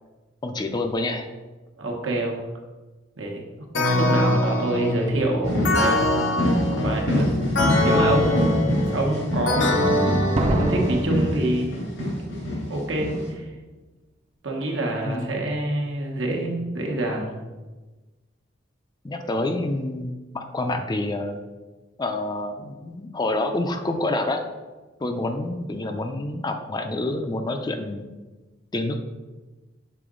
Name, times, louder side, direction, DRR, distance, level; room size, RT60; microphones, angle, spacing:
voice 1, 0.4-1.3 4.9-5.0 15.0-15.5 19.0-21.4 22.0-24.4 25.0-28.0 28.7-29.0, left 2 dB, 20° left, 6 dB, 0.4 m, -27 dB
voice 2, 1.8-2.4 3.2-3.4 3.8-6.3 6.7-7.3 7.8-10.0 10.5-11.8 12.7-13.4 14.4-17.4, right 1 dB, 80° right, 0 dB, 1.1 m, -26 dB
sound 1, 3.7-11.4, left 1 dB, 70° left, 0.7 m, -24 dB
sound 2, 5.4-13.3, equal, 85° left, 1.9 m, -26 dB
Slam, 7.2-7.3 7.9-8.3 10.4-12.2 12.5-12.6, right 1 dB, 35° right, 0.5 m, -28 dB
6.8 x 3.9 x 3.7 m, 1.2 s
head